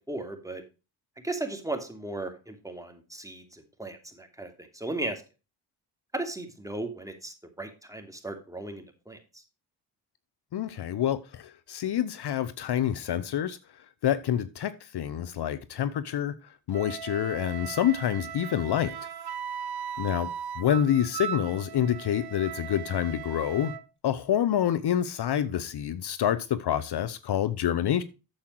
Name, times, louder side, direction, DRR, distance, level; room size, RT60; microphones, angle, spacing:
voice 1, 0.1-0.6 1.2-5.2 6.1-9.2, right 2 dB, 5° right, 2.8 m, -36 dB
voice 2, 10.5-13.6 14.0-16.3 16.7-18.9 20.0-20.3 20.6-23.7 24.0-28.0, left 10 dB, 60° left, 0.9 m, -27 dB
Wind instrument woodwind instrument, 16.7-23.8, right 8 dB, 55° right, 1.0 m, -38 dB
8.9 x 7.3 x 4.6 m
supercardioid pair, 50°, 45 cm